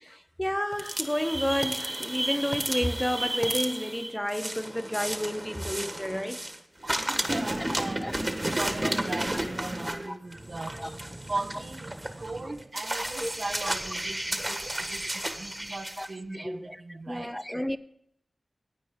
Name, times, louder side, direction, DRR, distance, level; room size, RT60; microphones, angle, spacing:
voice 1, 0.1-6.4 7.1-7.2 8.0-8.1 8.8-8.9 10.1-10.2 10.8-10.9 13.2-13.3 16.0-16.1 16.3-16.8 17.1-17.8, equal, 10° left, 0.6 m, -31 dB
sound 1, 0.7-6.6 6.9-16.1, right 1 dB, 25° right, 1.5 m, -32 dB
voice 2, 6.8-10.8 11.3-17.4, right 2 dB, 60° right, 1.0 m, -38 dB
16.0 x 9.1 x 3.7 m
cardioid pair, 45°, 0 cm